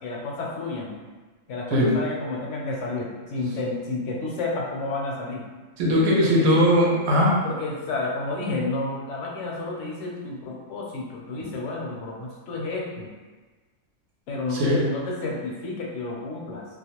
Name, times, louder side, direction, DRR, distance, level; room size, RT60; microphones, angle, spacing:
voice 1, 0.0-1.0 1.5-5.4 6.2-6.7 7.4-13.1 14.3-16.6, left 2 dB, 70° left, -2 dB, 0.9 m, -31 dB
voice 2, 5.8-7.3 11.4-11.5 14.6-14.8, equal, 80° right, -4 dB, 1.0 m, -19 dB
2.3 x 2.1 x 2.8 m, 1.3 s
omnidirectional pair, 1.3 m